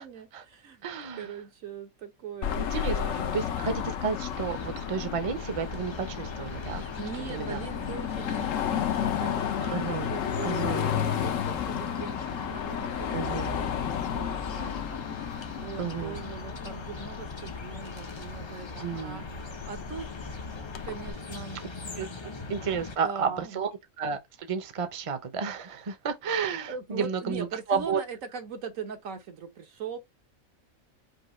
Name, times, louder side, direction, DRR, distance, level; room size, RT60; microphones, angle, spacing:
voice 1, 0.0-0.8 1.2-2.6 2.9-3.7 6.8-21.6 22.1-22.2 23.0-23.6 26.7-30.0, right 6 dB, 75° right, 1.4 m, -41 dB
voice 2, 0.8-1.3 2.6-6.9 7.3-7.6 9.7-10.9 13.1-13.6 15.8-16.2 18.8-19.3 22.0-22.1 22.5-23.7 24.0-28.0, right 6 dB, 30° right, 0.6 m, -32 dB
Car passing by / Traffic noise roadway noise / Engine, 2.4-21.1, left 9 dB, 70° left, 1.0 m, -33 dB
sound 1, 4.3-23.0, left 3 dB, 30° left, 0.5 m, -41 dB
5.3 x 2.3 x 4.3 m
omnidirectional pair, 1.4 m